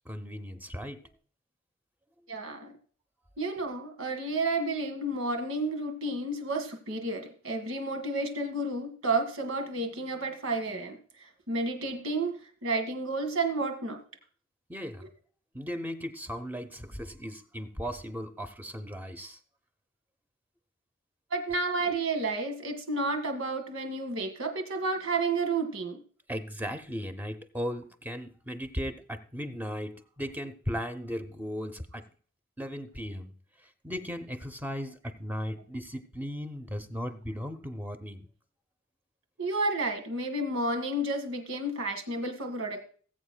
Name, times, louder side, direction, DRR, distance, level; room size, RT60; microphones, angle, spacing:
voice 1, 0.0-1.1 14.7-15.1 15.5-19.4 26.3-32.1 32.6-33.3 33.8-38.2, equal, 10° right, 8 dB, 0.7 m, -37 dB
voice 2, 2.3-2.7 3.4-11.0 11.5-14.0 21.3-26.0 39.4-42.9, right 2 dB, 85° right, 5 dB, 1.9 m, -31 dB
19.5 x 8.1 x 2.2 m, 0.43 s
head